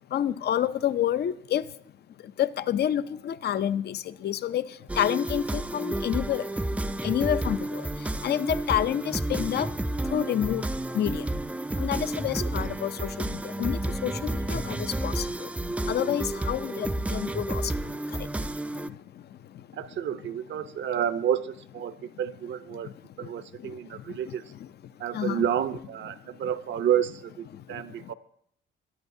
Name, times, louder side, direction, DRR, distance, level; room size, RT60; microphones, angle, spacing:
voice 1, 0.1-1.7 2.2-6.5 7.0-10.6 10.9-11.3 11.8-15.5 15.8-18.3 18.7-19.0 22.7-22.8 23.2-23.3 23.6-24.4 25.1-25.4 27.5-28.1, left 10 dB, 55° left, 0.5 m, -29 dB
sound 1, 4.9-18.9, right 1 dB, 5° right, 0.4 m, -31 dB
voice 2, 19.7-22.9 23.2-24.5 25.0-28.1, right 9 dB, 65° right, 0.7 m, -30 dB
20.0 x 10.5 x 2.7 m
cardioid pair, 90°, 20 cm